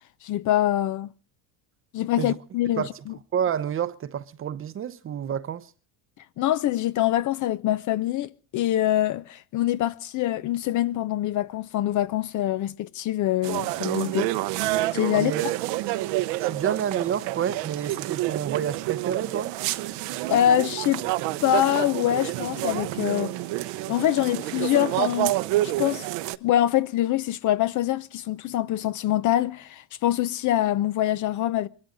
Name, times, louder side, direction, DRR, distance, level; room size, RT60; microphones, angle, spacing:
voice 1, 0.2-1.1 1.9-3.1 6.4-14.3 14.9-15.5 20.3-21.0 21.4-23.3 23.9-25.4 25.6-26.1 26.4-31.7, left 13 dB, 45° left, 0.6 m, -24 dB
voice 2, 3.3-5.7 15.1-15.4 16.4-19.5, right 8 dB, 30° right, 0.7 m, -29 dB
sound 1, 13.4-26.4, right 16 dB, 70° right, 0.9 m, -28 dB
23.5 x 13.0 x 3.8 m
cardioid pair, 130°, 44 cm